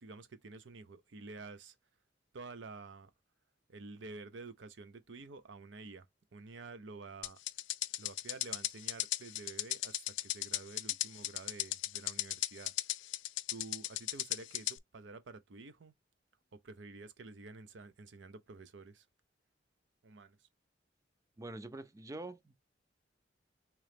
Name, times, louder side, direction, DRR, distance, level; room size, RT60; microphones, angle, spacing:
voice 1, 0.0-1.8 2.3-3.1 3.7-6.1 6.3-7.4 8.0-12.7 13.5-15.9 16.5-19.1 20.0-20.5, right 3 dB, 75° right, 0.6 m, -50 dB
sound 1, 7.2-14.8, left 16 dB, 85° left, 0.4 m, -36 dB
voice 2, 21.4-22.5, right 2 dB, 20° right, 0.4 m, -45 dB
3.7 x 3.0 x 3.4 m
head